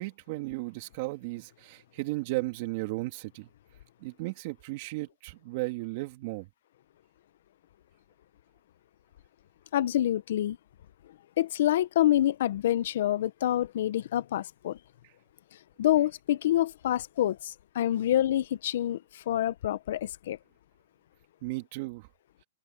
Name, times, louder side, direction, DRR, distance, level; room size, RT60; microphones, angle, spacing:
voice 1, 0.0-3.5 4.0-6.5 21.4-22.1, right 22 dB, 40° right, 3.2 m, -35 dB
voice 2, 9.7-10.6 11.4-14.8 15.8-20.4, left 12 dB, 60° left, 0.9 m, -27 dB
open air
hypercardioid pair, 150°, 0 cm